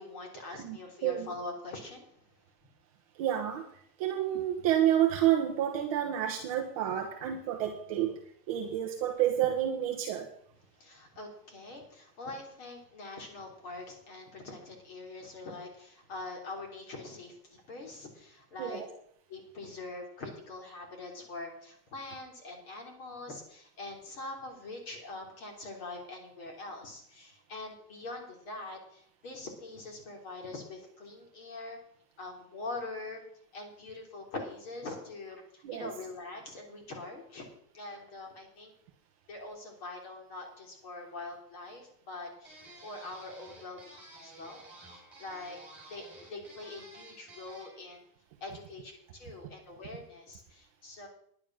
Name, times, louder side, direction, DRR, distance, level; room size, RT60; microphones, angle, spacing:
voice 1, 0.0-2.1 10.7-18.8 19.3-31.8 32.2-33.2 33.5-37.5 37.7-38.7 39.3-45.6 45.9-48.0 48.4-51.1, left 2 dB, 35° left, 1 dB, 3.2 m, -43 dB
voice 2, 0.6-1.3 3.2-8.2 8.5-10.3 18.6-18.9 35.6-35.9, right 11 dB, 25° right, 2 dB, 0.6 m, -29 dB
sound 1, 42.4-47.8, right 2 dB, 5° right, 5.7 m, -52 dB
10.5 x 9.1 x 6.2 m, 0.67 s
supercardioid pair, 180°, 48 cm